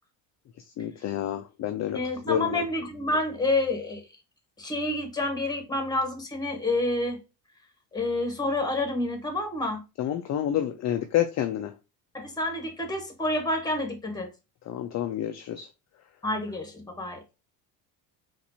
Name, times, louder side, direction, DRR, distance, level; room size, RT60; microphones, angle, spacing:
voice 1, 0.8-2.0 2.3-2.6 10.0-11.7 14.7-15.7, left 11 dB, 35° left, 0.4 m, -28 dB
voice 2, 1.9-4.1 4.6-7.2 7.9-9.8 12.1-14.3 16.2-17.2, left 2 dB, 10° left, 1.2 m, -28 dB
4.0 x 2.6 x 2.8 m
supercardioid pair, 85°, 47 cm